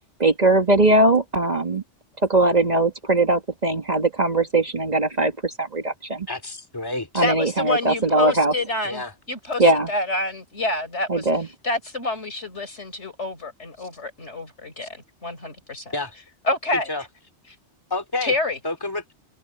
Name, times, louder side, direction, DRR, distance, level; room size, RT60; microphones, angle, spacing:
voice 1, 0.2-1.8 2.2-6.3 7.1-8.5 9.6-9.9 11.1-11.5, right 2 dB, 35° right, 1.7 m, -20 dB
voice 2, 6.3-7.2 8.8-9.1 13.8-13.9 15.9-16.1 16.9-17.0 17.9-18.3 18.6-19.1, left 2 dB, 20° left, 2.5 m, -29 dB
voice 3, 7.2-11.3 11.6-16.0 16.5-16.9 18.2-18.6, left 2 dB, 75° left, 5.1 m, -27 dB
omnidirectional pair, 1.2 m